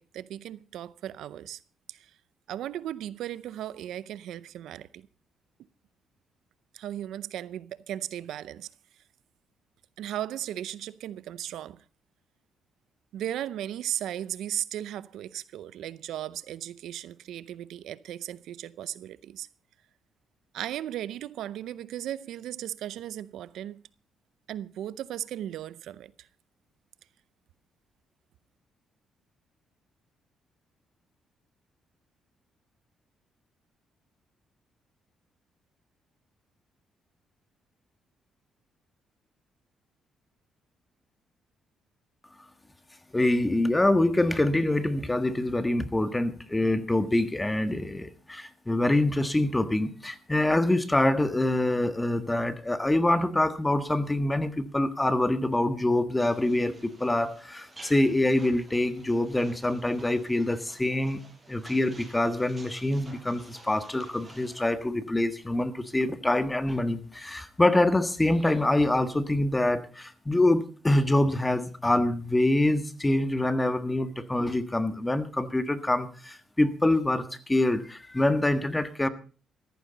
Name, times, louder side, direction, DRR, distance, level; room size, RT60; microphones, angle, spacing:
voice 1, 0.0-1.6 1.9-2.1 2.5-5.1 6.7-8.7 10.0-11.8 13.1-19.5 20.5-23.8 24.5-26.3, right 11 dB, 80° right, 0.5 m, -36 dB
voice 2, 43.1-61.2 61.5-79.1, left 1 dB, 15° left, 1.5 m, -25 dB
sound 1, 56.2-64.7, right 2 dB, 20° right, 7.3 m, -52 dB
14.5 x 14.5 x 4.0 m
cardioid pair, 90°, 0 cm